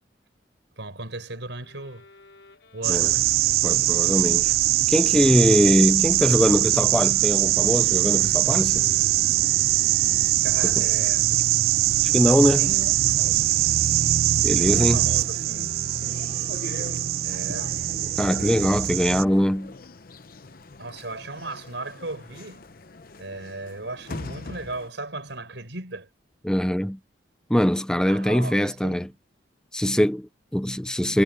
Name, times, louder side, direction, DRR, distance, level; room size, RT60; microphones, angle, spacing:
voice 1, 0.8-2.1 2.7-3.3 10.4-11.7 12.2-13.5 14.5-15.7 17.2-17.8 20.8-22.6 23.2-26.1 28.1-29.0, right 2 dB, 75° right, 5.5 m, -37 dB
sound 1, 1.6-16.5, left 2 dB, 70° left, 4.2 m, -51 dB
sound 2, 2.8-19.2, right 15 dB, 55° right, 0.3 m, -22 dB
voice 2, 3.6-4.5 4.9-8.9 10.6-10.8 12.0-12.7 14.4-15.0 17.5-17.6 18.2-19.7 26.4-27.0 27.5-29.1 29.7-31.2, equal, 5° left, 0.5 m, -22 dB
sound 3, 14.6-24.9, left 3 dB, 50° left, 0.8 m, -42 dB
head